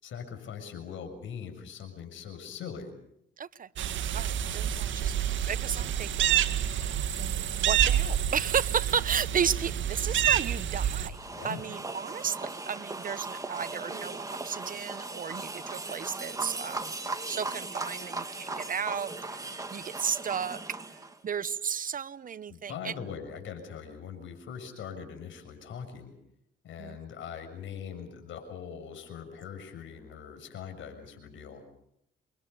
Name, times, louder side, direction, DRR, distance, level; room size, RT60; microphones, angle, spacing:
voice 1, 0.0-2.9 11.3-11.6 22.5-26.1 26.6-31.6, left 7 dB, 75° left, 7 dB, 6.8 m, -41 dB
voice 2, 3.4-3.7 4.1-6.5 7.2-16.9 17.2-20.6 21.2-22.9 26.8-27.0, right 7 dB, 45° right, 17 dB, 0.9 m, -33 dB
sound 1, 3.8-11.1, right 10 dB, 70° right, 1.8 m, -28 dB
sound 2, 11.1-21.2, right 3 dB, 15° right, 2.7 m, -38 dB
28.0 x 23.5 x 6.9 m, 0.75 s
cardioid pair, 90°, 20 cm